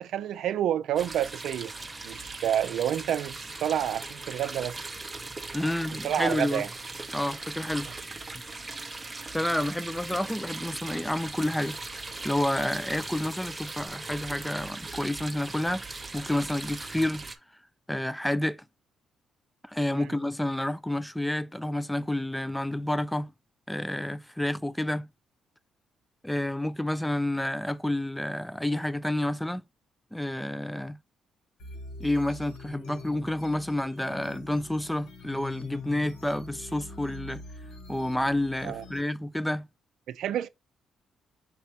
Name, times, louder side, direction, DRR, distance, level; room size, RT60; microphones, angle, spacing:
voice 1, 0.0-1.7 2.0-4.8 6.0-6.7 19.9-20.1 38.6-38.8 40.1-40.5, right 10 dB, 75° right, 0.4 m, -29 dB
sound 1, 1.0-17.4, right 3 dB, 20° right, 0.7 m, -39 dB
voice 2, 5.5-6.7 7.1-7.9 9.3-11.8 12.2-15.8 16.1-17.2 17.9-18.6 19.6-23.3 23.7-25.1 26.2-29.6 30.1-31.0 32.0-37.4 37.9-39.7, left 1 dB, 5° left, 0.3 m, -29 dB
sound 2, 6.0-13.9, left 2 dB, 55° left, 2.8 m, -54 dB
sound 3, 31.6-39.0, left 3 dB, 75° left, 1.3 m, -44 dB
5.7 x 3.3 x 2.8 m
cardioid pair, 90°, 0 cm